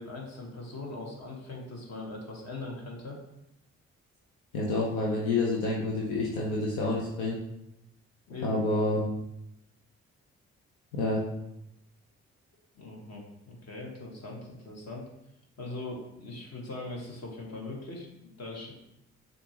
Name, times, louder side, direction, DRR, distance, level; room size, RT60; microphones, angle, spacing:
voice 1, 0.0-3.2 8.3-8.6 12.7-15.1 15.6-18.1 18.4-18.7, left 2 dB, 50° left, -1 dB, 1.5 m, -40 dB
voice 2, 4.5-7.4 8.4-9.0 10.9-11.2, left 2 dB, 85° left, -3 dB, 0.7 m, -28 dB
6.7 x 2.7 x 2.9 m, 0.83 s
hypercardioid pair, 40°, 33 cm